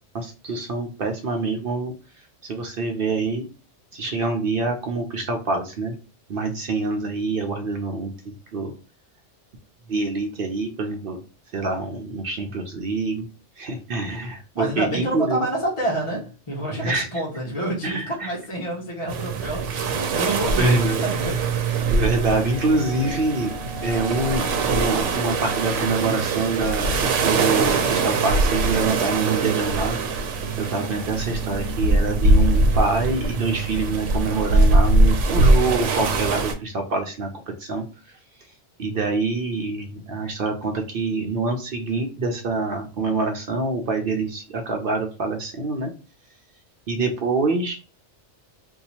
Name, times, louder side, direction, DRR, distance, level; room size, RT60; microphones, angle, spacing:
voice 1, 0.1-1.9 2.4-3.5 3.9-6.0 6.3-8.7 9.9-11.2 11.5-13.3 13.6-15.5 16.8-17.1 17.8-18.3 20.6-21.0 21.9-23.5 23.8-29.9 30.6-37.8 38.8-45.9 46.9-47.8, right 3 dB, 60° right, 4 dB, 0.7 m, -26 dB
voice 2, 14.6-21.4, right 1 dB, 30° left, -4 dB, 0.9 m, -28 dB
sound 1, 19.1-36.5, right 3 dB, 85° right, 0.9 m, -22 dB
sound 2, 22.0-28.3, left 4 dB, 85° left, 0.9 m, -41 dB
2.8 x 2.3 x 4.0 m, 0.33 s
omnidirectional pair, 1.2 m